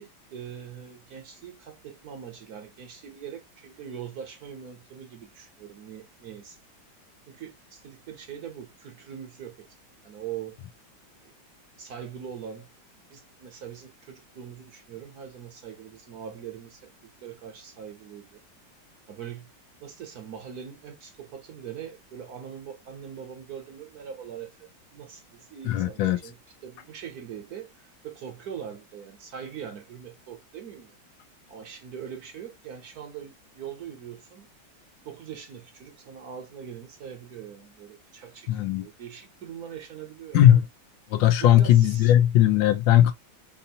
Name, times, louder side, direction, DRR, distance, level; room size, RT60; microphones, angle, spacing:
voice 1, 0.0-6.6 7.3-9.7 10.0-10.6 11.2-11.3 11.8-12.7 13.1-18.4 19.1-19.5 19.8-26.4 26.6-31.0 31.5-34.5 35.0-40.6 41.4-42.1, right 8 dB, 60° right, 1.2 m, -42 dB
voice 2, 25.6-26.2 38.5-38.8 40.3-40.6 41.1-43.1, left 11 dB, 75° left, 1.2 m, -18 dB
4.2 x 2.6 x 2.7 m
omnidirectional pair, 2.1 m